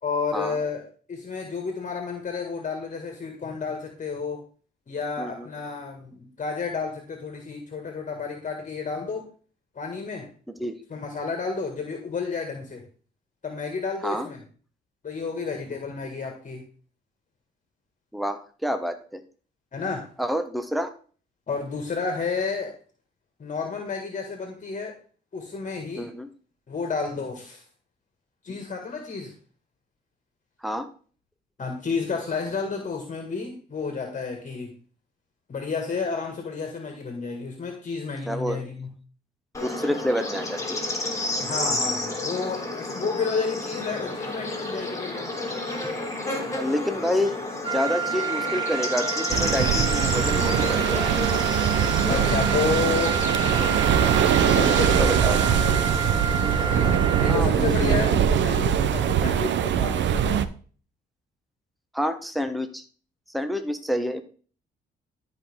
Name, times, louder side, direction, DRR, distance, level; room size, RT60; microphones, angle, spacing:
voice 1, 0.0-4.4 4.9-9.2 9.8-10.3 10.9-12.8 13.4-14.4 15.0-16.6 19.7-20.1 21.5-22.7 23.4-25.0 25.3-26.1 26.7-27.6 28.4-29.3 31.6-34.7 35.5-38.9 41.4-45.3 51.5-51.7 52.1-53.2 54.5-55.8 57.2-60.4, left 5 dB, 40° left, 3 dB, 2.0 m, -31 dB
voice 2, 5.2-5.5 10.6-10.8 14.0-14.3 18.1-19.2 20.2-20.9 26.0-26.3 30.6-30.9 38.3-38.6 39.6-40.8 46.5-47.3 47.6-51.2 54.6-55.5 57.3-58.0 61.9-62.8 63.3-64.2, equal, ahead, 8 dB, 1.1 m, -28 dB
Bird / Insect, 39.5-56.9, left 2 dB, 15° left, 2.9 m, -31 dB
sound 1, 47.6-57.4, right 6 dB, 25° right, 0.6 m, -29 dB
sound 2, 49.3-60.5, right 9 dB, 70° right, 0.7 m, -22 dB
13.0 x 5.3 x 3.7 m, 0.41 s
cardioid pair, 90°, 20 cm